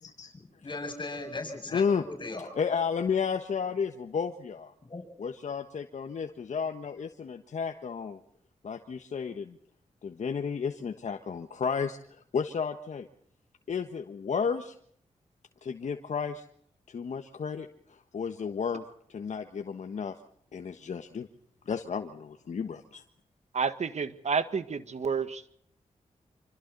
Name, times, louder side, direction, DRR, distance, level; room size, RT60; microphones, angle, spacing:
voice 1, 0.3-2.5 4.8-5.1, left 2 dB, 40° left, 5 dB, 7.2 m, -38 dB
voice 2, 1.7-2.0 2.6-4.7 5.2-8.2 8.6-9.6 10.0-13.1 13.7-14.7 15.6-16.4 16.9-18.8 19.1-20.1 20.5-21.3 21.6-23.0, left 6 dB, 70° left, 5 dB, 1.5 m, -32 dB
voice 3, 23.5-25.5, right 5 dB, 65° right, 11 dB, 1.8 m, -30 dB
26.5 x 25.5 x 4.2 m, 0.65 s
cardioid pair, 60°, 13 cm